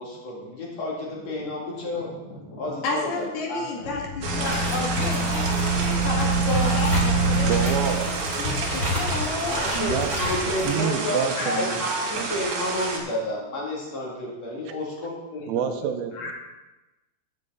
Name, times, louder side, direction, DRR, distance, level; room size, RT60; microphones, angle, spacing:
voice 1, 0.0-4.0 8.8-9.0 9.5-16.3, left 1 dB, 45° left, -3 dB, 3.3 m, -31 dB
voice 2, 2.8-9.6, left 3 dB, 85° left, -1 dB, 3.8 m, -31 dB
sound 1, 3.8-6.3, left 6 dB, 65° left, 1.1 m, -43 dB
sound 2, 4.2-10.7, right 2 dB, 15° left, 3.2 m, -25 dB
sound 3, 4.2-13.0, right 3 dB, 60° right, 2.8 m, -30 dB
voice 3, 7.5-8.1 9.8-10.2 10.7-11.8 12.2-12.3 15.5-16.3, right 8 dB, 80° right, 7 dB, 2.6 m, -28 dB
7.5 x 6.8 x 8.1 m, 1.1 s
omnidirectional pair, 4.4 m